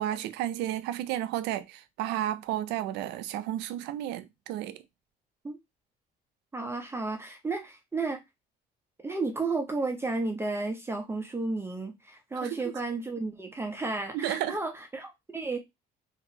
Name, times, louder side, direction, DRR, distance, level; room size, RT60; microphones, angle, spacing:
voice 1, 0.0-4.8 12.4-12.7 14.1-14.6, right 12 dB, 90° right, 0.4 m, -32 dB
voice 2, 6.5-8.2 9.0-15.6, right 3 dB, 15° right, 0.6 m, -32 dB
2.9 x 2.5 x 2.7 m
cardioid pair, 110°, 17 cm